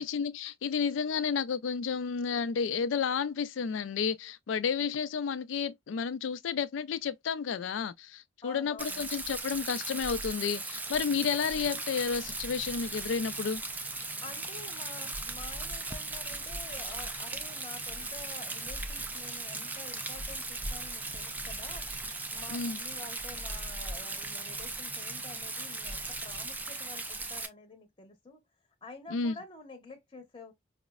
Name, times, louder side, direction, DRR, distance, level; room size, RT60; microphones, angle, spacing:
voice 1, 0.0-13.6 22.5-22.8 29.1-29.4, left 6 dB, 85° left, 0.4 m, -31 dB
voice 2, 8.4-9.1 14.2-21.9 22.3-28.4 28.8-30.5, left 3 dB, 25° left, 0.8 m, -49 dB
Rain, 8.8-27.5, right 2 dB, 10° right, 0.3 m, -38 dB
sound 1, 11.1-26.5, right 4 dB, 60° right, 0.7 m, -53 dB
4.9 x 2.0 x 2.2 m
head